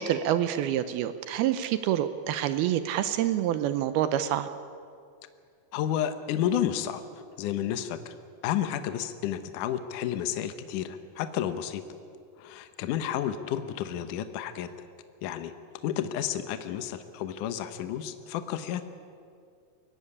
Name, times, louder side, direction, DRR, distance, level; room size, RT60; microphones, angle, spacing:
voice 1, 0.0-4.5, right 11 dB, 80° right, 11 dB, 2.4 m, -27 dB
voice 2, 5.7-8.2 8.4-11.8 12.4-14.7 15.2-15.5 15.8-18.8, left 10 dB, 80° left, 10 dB, 1.8 m, -31 dB
23.0 x 16.5 x 9.9 m, 2.3 s
omnidirectional pair, 5.0 m